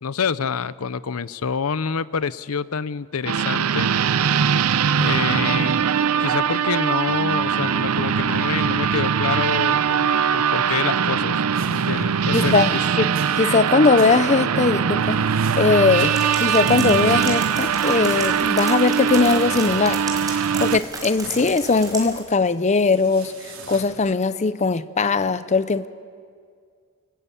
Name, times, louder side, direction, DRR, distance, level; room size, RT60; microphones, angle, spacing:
voice 1, 0.0-3.9 5.0-5.8 6.2-11.4 11.7-12.8 16.0-16.1, left 6 dB, 75° left, 17 dB, 0.6 m, -27 dB
sound 1, 3.3-20.8, right 7 dB, 85° right, 0.6 m, -21 dB
sound 2, 10.2-10.3 10.6-10.7 11.5-14.6 15.0-18.8 19.1-19.9 20.2-20.4 20.6-22.2 22.5-22.6 22.8-23.9, right 3 dB, 60° right, 5.2 m, -41 dB
voice 2, 12.3-12.7 13.0-13.1 13.4-15.2 15.6-16.1 16.4-20.0 20.6-25.9, left 4 dB, 30° left, 14 dB, 0.6 m, -19 dB
sound 3, 16.1-22.2, right 3 dB, 15° right, 4.5 m, -34 dB
28.5 x 20.0 x 8.4 m, 2.1 s
head